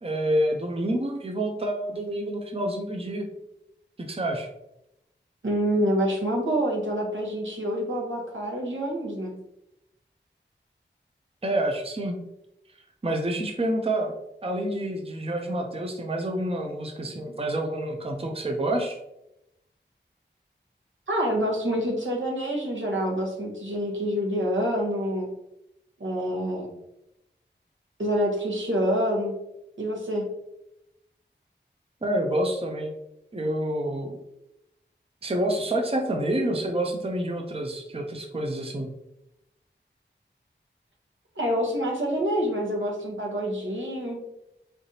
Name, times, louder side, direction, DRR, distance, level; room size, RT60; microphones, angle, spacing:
voice 1, 0.0-3.3 4.0-4.5 11.4-12.2 13.0-14.2 14.4-19.0 32.0-32.9 33.3-34.2 35.2-38.9, right 1 dB, 30° right, 2 dB, 0.6 m, -28 dB
voice 2, 5.4-9.3 21.1-25.3 26.0-26.7 28.0-29.3 29.8-30.2 41.4-44.2, equal, 80° right, -1 dB, 1.1 m, -27 dB
3.8 x 3.4 x 2.7 m, 0.84 s
wide cardioid pair, 55°, 19 cm